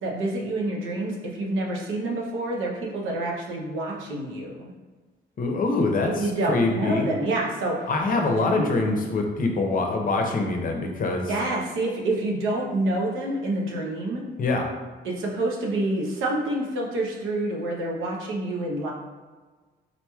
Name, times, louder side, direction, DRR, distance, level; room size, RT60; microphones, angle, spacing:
voice 1, 0.0-4.7 6.2-7.9 8.2-8.7 11.3-14.2 15.0-18.9, right 2 dB, 90° right, -1 dB, 0.7 m, -28 dB
voice 2, 5.4-7.1 7.9-11.3 14.4-14.7, left 3 dB, 45° left, 2 dB, 0.6 m, -24 dB
3.9 x 3.0 x 2.3 m, 1.3 s
cardioid pair, 90°, 20 cm